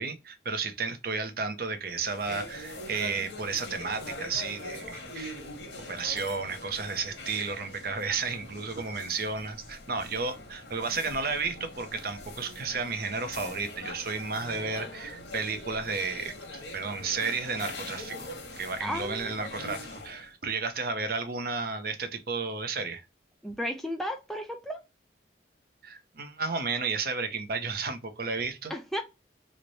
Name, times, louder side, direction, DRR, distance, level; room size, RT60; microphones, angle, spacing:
voice 1, 0.0-5.4 5.9-23.0 25.8-28.7, right 4 dB, 55° right, 0.6 m, -33 dB
sound 1, 1.8-20.3, left 1 dB, 85° left, 1.0 m, -42 dB
voice 2, 18.8-19.3 23.4-24.8 28.7-29.0, equal, ahead, 0.4 m, -34 dB
3.1 x 2.1 x 3.8 m
head